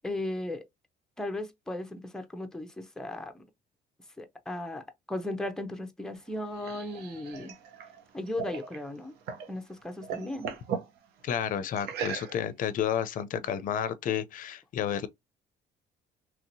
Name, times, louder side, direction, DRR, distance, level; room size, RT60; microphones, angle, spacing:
voice 1, 0.0-0.6 1.2-3.5 4.2-7.5 8.1-9.2 9.5-10.5, left 1 dB, 5° left, 0.6 m, -36 dB
sound 1, 6.1-9.5 9.8-10.9 11.8-12.6, right 7 dB, 75° right, 0.8 m, -38 dB
voice 2, 11.2-15.1, left 9 dB, 50° left, 0.5 m, -31 dB
3.0 x 2.8 x 2.6 m
cardioid pair, 110°, 17 cm